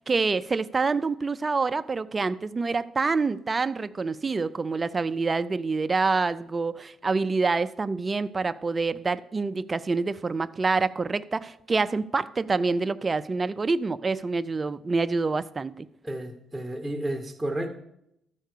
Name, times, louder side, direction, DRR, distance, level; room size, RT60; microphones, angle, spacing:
voice 1, 0.0-15.9, right 4 dB, 30° right, 0.4 m, -26 dB
voice 2, 16.0-17.7, right 1 dB, 10° right, 1.0 m, -31 dB
12.5 x 4.5 x 6.6 m
cardioid pair, 90°, 0 cm